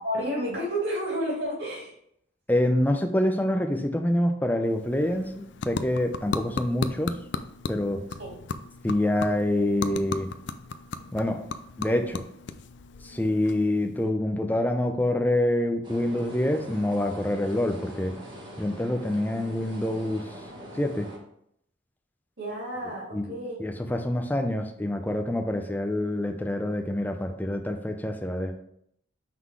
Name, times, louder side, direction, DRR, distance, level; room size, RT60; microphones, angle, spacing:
voice 1, 0.0-1.9 8.2-8.3 22.4-23.6, equal, 60° right, -4 dB, 2.5 m, -31 dB
voice 2, 2.5-7.2 7.7-8.1 8.8-10.3 11.1-11.5 11.8-12.2 13.0-18.1 18.6-20.3 20.7-21.1 23.1-28.5, left 1 dB, 10° left, 4 dB, 0.6 m, -26 dB
sound 1, 4.6-14.1, left 4 dB, 60° left, 0.4 m, -36 dB
sound 2, 15.8-21.2, equal, 25° right, 1.2 m, -43 dB
5.9 x 3.8 x 4.7 m, 0.72 s
head